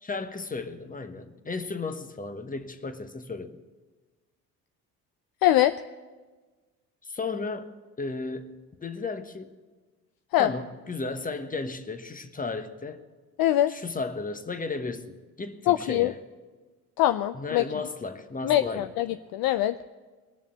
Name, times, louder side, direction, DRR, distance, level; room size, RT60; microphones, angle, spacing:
voice 1, 0.0-3.6 7.0-7.7 8.0-9.5 10.4-13.0 13.7-16.2 17.3-18.9, left 3 dB, 15° left, 9 dB, 1.2 m, -34 dB
voice 2, 5.4-5.7 10.3-10.5 13.4-13.7 15.7-16.1 17.0-17.6 18.4-19.1 19.3-19.8, left 13 dB, 50° left, 12 dB, 0.5 m, -22 dB
20.0 x 7.2 x 8.6 m, 1.3 s
hypercardioid pair, 55°, 49 cm